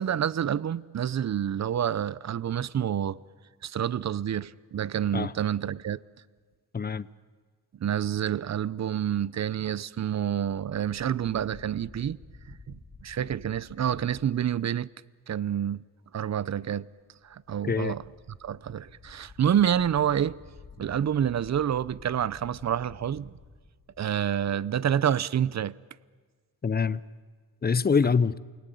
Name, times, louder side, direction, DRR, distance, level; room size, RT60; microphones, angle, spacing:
voice 1, 0.0-3.2 3.6-6.0 7.7-12.2 12.5-14.9 15.3-15.8 16.1-16.9 17.2-18.0 18.3-20.4 20.8-23.3 24.0-25.8 28.0-28.1, right 9 dB, 50° right, 0.7 m, -28 dB
voice 2, 6.7-7.1 17.7-17.9 26.6-27.0 27.6-28.4, left 5 dB, 25° left, 0.8 m, -24 dB
sound 1, 10.5-14.4 17.2-24.5, left 4 dB, 45° left, 4.1 m, -51 dB
28.5 x 20.0 x 9.3 m
cardioid pair, 90°, 35 cm